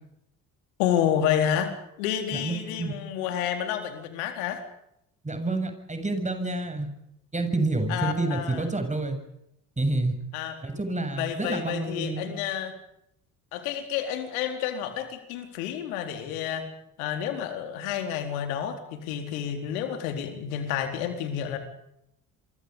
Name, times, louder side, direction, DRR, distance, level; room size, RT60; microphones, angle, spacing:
voice 1, 0.8-1.7 2.0-4.6 7.9-8.7 10.3-10.6 11.1-12.7 13.5-16.6 17.0-21.6, left 9 dB, 70° left, 6 dB, 4.3 m, -29 dB
voice 2, 2.3-3.0 5.2-6.9 7.3-9.2 9.8-10.1 10.6-12.3, right 2 dB, 15° right, 7 dB, 7.4 m, -28 dB
28.5 x 24.0 x 5.3 m, 0.78 s
figure-of-eight pair, 55°, 44 cm